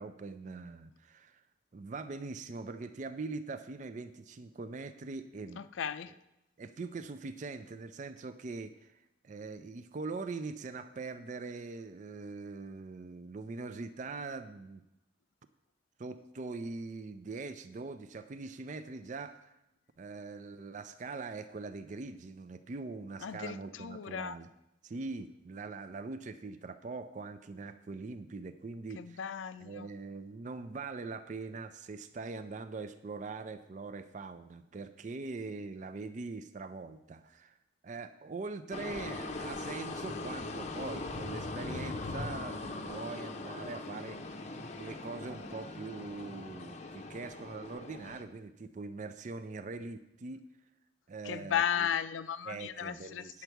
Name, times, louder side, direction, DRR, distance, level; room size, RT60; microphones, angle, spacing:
voice 1, 0.0-1.4 1.7-5.7 6.6-14.8 16.0-19.5 20.0-24.5 24.8-29.3 29.6-37.6 37.8-44.4 44.8-50.5 51.1-51.9 52.5-53.4, right 3 dB, 40° right, 11 dB, 0.4 m, -42 dB
voice 2, 5.6-6.1 23.2-24.4 29.0-29.9 51.2-53.3, left 8 dB, 85° left, 14 dB, 0.4 m, -35 dB
sound 1, 38.7-48.2, left 2 dB, 35° left, 0.6 m, -40 dB
9.4 x 7.0 x 4.5 m, 0.88 s
head